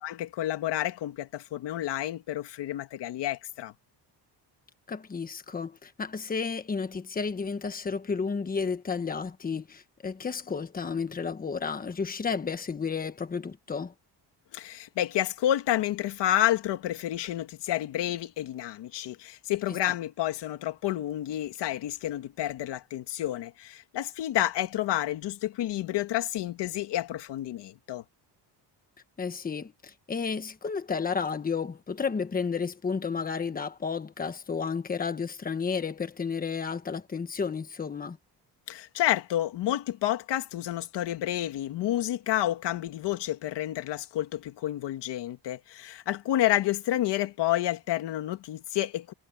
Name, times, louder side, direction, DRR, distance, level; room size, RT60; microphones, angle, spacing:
voice 1, 0.0-3.7 14.5-28.0 38.7-49.1, left 13 dB, 90° left, 1.8 m, -30 dB
voice 2, 4.9-13.9 19.9-20.0 29.2-38.2, left 5 dB, 20° left, 1.4 m, -32 dB
cardioid pair, 165°, 41 cm